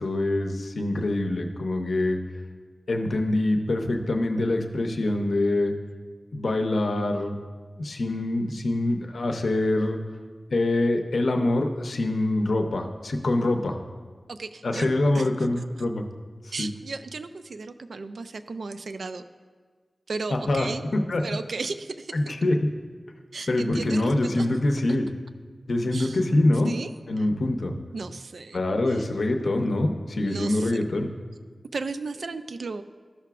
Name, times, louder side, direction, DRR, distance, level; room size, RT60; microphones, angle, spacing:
voice 1, 0.0-2.2 2.9-5.7 6.3-7.4 7.8-10.0 10.5-13.8 14.6-16.0 16.4-16.7 20.3-20.7 21.1-21.2 22.1-22.6 23.5-25.1 25.7-26.7 27.1-27.7 28.5-31.1, left 2 dB, 75° left, 5 dB, 0.6 m, -25 dB
voice 2, 14.3-15.3 15.6-15.7 16.5-19.2 20.1-20.8 21.1-22.3 23.3-24.5 25.9-26.2 26.6-26.9 27.2-27.3 27.9-28.6 28.9-29.1 30.2-30.7 31.7-32.8, right 3 dB, 85° right, 10 dB, 0.3 m, -35 dB
13.0 x 5.8 x 2.3 m, 1.5 s
wide cardioid pair, 95°, 0 cm